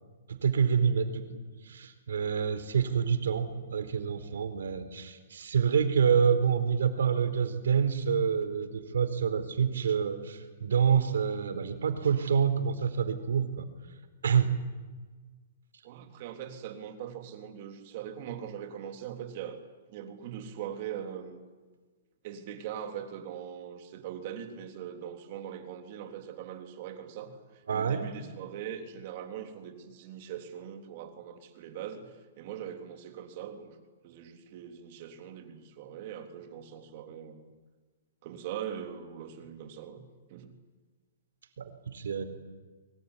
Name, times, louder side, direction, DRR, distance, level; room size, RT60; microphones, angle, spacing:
voice 1, 0.3-1.3 1.6-13.7 14.2-14.5 27.7-28.0 41.6-42.2, right 7 dB, 90° right, 9 dB, 4.1 m, -27 dB
voice 2, 15.8-19.6 19.9-21.4 22.2-33.8 34.0-37.5 38.2-40.0 40.3-40.6, right 9 dB, 40° right, 6 dB, 3.5 m, -41 dB
24.5 x 24.0 x 9.9 m, 1.3 s
hypercardioid pair, 170°, 0 cm